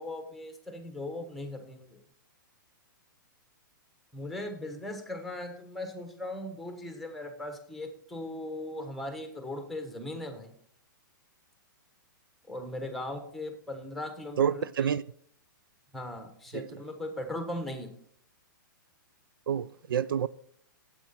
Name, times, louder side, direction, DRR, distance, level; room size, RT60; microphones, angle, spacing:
voice 1, 0.0-2.0 4.1-10.5 12.5-14.6 15.9-17.9, left 1 dB, ahead, 1.2 m, -38 dB
voice 2, 14.4-15.0 16.5-16.7 19.5-20.3, right 8 dB, 85° right, 0.4 m, -28 dB
9.0 x 7.8 x 4.3 m
hypercardioid pair, 140°, 11 cm